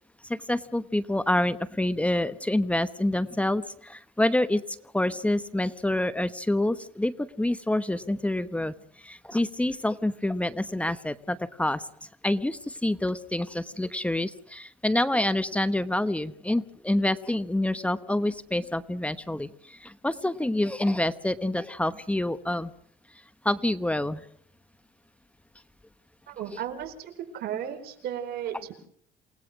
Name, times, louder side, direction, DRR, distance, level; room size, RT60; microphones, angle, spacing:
voice 1, 0.2-4.6 4.9-22.7 23.4-24.2, left 1 dB, 5° left, 12 dB, 1.0 m, -27 dB
voice 2, 26.3-28.9, right 10 dB, 70° right, 7 dB, 4.7 m, -35 dB
28.5 x 18.5 x 6.3 m, 0.64 s
cardioid pair, 110°, 17 cm